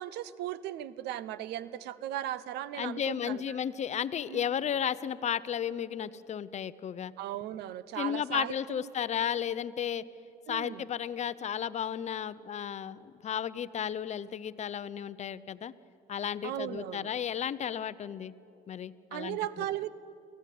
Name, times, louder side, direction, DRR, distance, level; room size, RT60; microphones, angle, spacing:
voice 1, 0.0-3.6 4.3-4.4 7.2-8.9 10.5-10.8 16.4-17.1 19.1-19.9, right 12 dB, 85° right, 17 dB, 0.8 m, -37 dB
voice 2, 2.8-7.1 8.0-10.0 10.5-15.7 16.1-18.3 18.7-19.4, left 9 dB, 40° left, 16 dB, 0.7 m, -33 dB
25.0 x 16.5 x 8.5 m, 2.9 s
cardioid pair, 110°, 17 cm